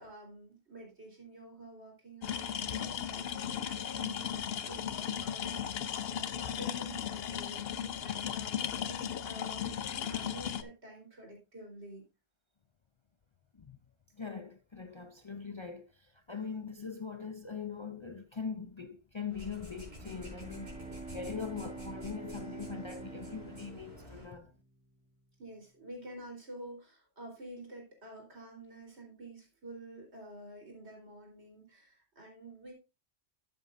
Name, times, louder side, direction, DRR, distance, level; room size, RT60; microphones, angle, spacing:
voice 1, 0.0-6.1 6.4-12.0 25.4-32.7, right 1 dB, 80° right, 4.0 m, -49 dB
sound 1, 2.2-10.6, left 9 dB, 65° left, 0.9 m, -36 dB
voice 2, 14.1-20.8 21.1-24.5, left 6 dB, 35° left, 0.5 m, -42 dB
sound 2, 19.3-24.3, equal, 45° right, 4.2 m, -49 dB
Bowed string instrument, 19.9-24.8, right 4 dB, 5° right, 2.0 m, -47 dB
12.5 x 8.0 x 2.5 m
omnidirectional pair, 1.1 m